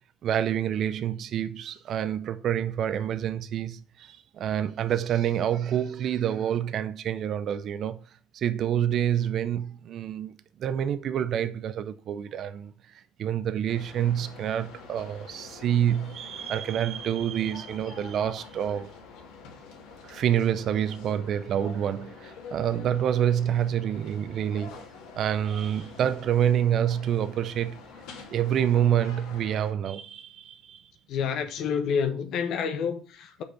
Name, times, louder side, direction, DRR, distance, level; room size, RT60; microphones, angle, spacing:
voice 1, 0.2-8.0 8.3-10.3 10.6-18.9 20.0-24.8 25.2-27.8 28.3-30.9, right 10 dB, 55° right, 0.5 m, -27 dB
sound 1, 13.7-29.7, left 5 dB, 80° left, 2.1 m, -46 dB
voice 2, 31.1-33.4, left 6 dB, 60° left, 1.1 m, -28 dB
6.6 x 5.1 x 5.1 m
supercardioid pair, 100°, 0 cm